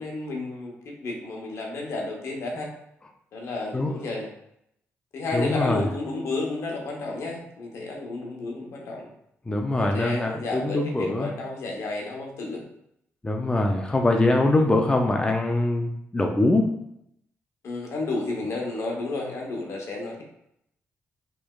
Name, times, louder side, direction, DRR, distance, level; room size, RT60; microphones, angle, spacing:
voice 1, 0.0-2.7 3.3-4.3 5.1-9.1 9.7-12.6 13.9-14.6 17.6-20.2, left 2 dB, 70° left, 0 dB, 0.8 m, -32 dB
voice 2, 5.3-5.8 9.5-11.3 13.2-16.7, left 2 dB, 15° left, 2 dB, 0.4 m, -23 dB
3.2 x 3.0 x 2.3 m, 0.75 s
cardioid pair, 80°, 5 cm